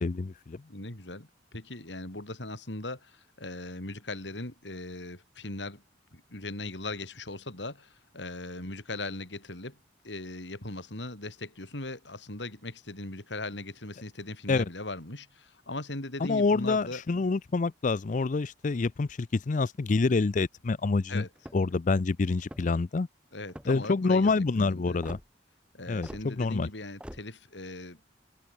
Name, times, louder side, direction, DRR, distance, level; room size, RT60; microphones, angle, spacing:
voice 1, 0.0-0.6 14.5-14.6 16.3-21.2 21.5-23.1 23.7-25.2 25.9-26.7, left 3 dB, 45° left, 0.5 m, -27 dB
voice 2, 0.7-5.8 6.1-9.8 10.0-17.0 21.1-21.3 23.3-25.0 25.7-28.0, left 2 dB, 80° left, 4.1 m, -39 dB
sound 1, 21.4-21.8 22.4-22.9 23.5-23.9 25.0-25.3 26.0-26.3 27.0-27.2, equal, 5° right, 3.6 m, -44 dB
open air
head